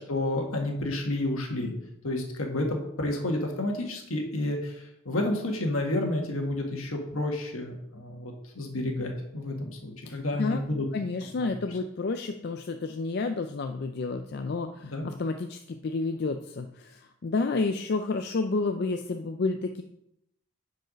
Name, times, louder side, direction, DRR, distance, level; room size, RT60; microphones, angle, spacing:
voice 1, 0.0-1.7 2.0-10.9 11.4-11.5 14.8-15.1, left 1 dB, 70° left, 2 dB, 1.6 m, -30 dB
voice 2, 10.1-10.6 10.9-19.8, left 3 dB, 45° left, 6 dB, 0.4 m, -30 dB
9.1 x 4.7 x 5.2 m, 0.80 s
head